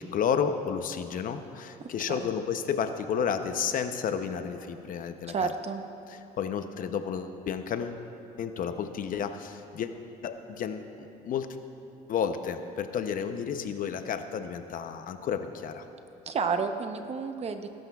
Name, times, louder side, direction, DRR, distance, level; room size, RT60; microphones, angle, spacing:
voice 1, 0.0-5.5 6.1-8.0 8.4-9.9 10.2-11.5 12.1-15.8, left 7 dB, 55° left, 8 dB, 0.7 m, -31 dB
voice 2, 5.3-5.8 16.3-17.7, right 5 dB, 40° right, 8 dB, 0.8 m, -30 dB
19.5 x 12.0 x 2.4 m, 2.9 s
cardioid pair, 110°, 17 cm